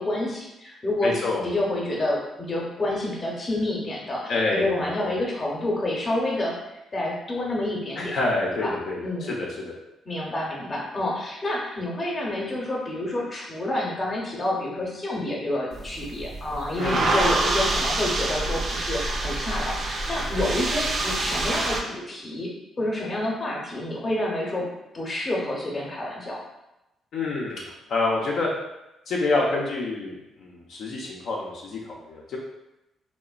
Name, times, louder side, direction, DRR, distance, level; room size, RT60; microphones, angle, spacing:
voice 1, 0.0-6.5 6.9-8.1 8.6-8.7 9.0-9.4 10.1-22.5 22.8-24.6 24.9-26.4, left 1 dB, 30° left, -2 dB, 0.7 m, -28 dB
voice 2, 1.0-1.5 4.3-4.7 5.0-5.1 8.0-9.7 16.8-17.2 27.1-28.5 29.1-32.4, left 3 dB, 70° left, -3 dB, 0.4 m, -27 dB
sound 1, 15.7-21.8, right 2 dB, 65° right, 0.5 m, -26 dB
2.9 x 2.1 x 2.3 m, 0.92 s
cardioid pair, 90°, 0 cm